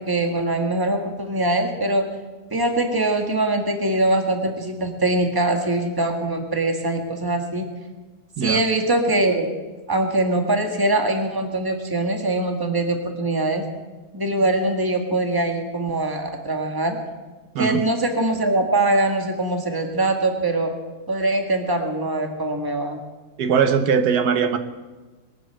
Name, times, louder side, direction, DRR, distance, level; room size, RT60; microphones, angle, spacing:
voice 1, 0.0-2.1 2.5-7.7 8.4-9.5 9.9-13.6 14.1-17.0 17.6-20.7 21.1-23.0, right 2 dB, 15° right, 4 dB, 1.7 m, -22 dB
voice 2, 23.4-24.6, right 6 dB, 85° right, 9 dB, 1.5 m, -20 dB
22.0 x 7.7 x 7.8 m, 1.3 s
omnidirectional pair, 1.6 m